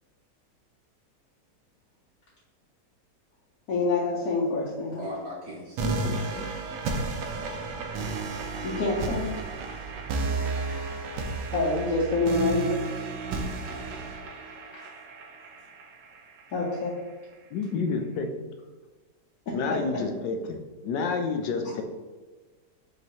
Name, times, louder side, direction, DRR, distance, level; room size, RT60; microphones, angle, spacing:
voice 1, 3.7-5.0 6.3-6.5 8.6-9.3 9.7-9.8 10.4-10.6 11.5-12.8 14.7-14.9 16.5-17.0 19.5-20.0, left 3 dB, 65° left, -5 dB, 1.1 m, -27 dB
voice 2, 5.0-6.0, equal, 45° right, -6 dB, 1.0 m, -38 dB
voice 3, 5.8-6.5 10.2-10.4 17.5-18.5 19.5-21.8, left 4 dB, 85° left, 5 dB, 1.3 m, -30 dB
sound 1, 5.8-16.8, right 3 dB, 85° right, 1.2 m, -33 dB
5.3 x 3.0 x 2.8 m, 1.3 s
omnidirectional pair, 1.9 m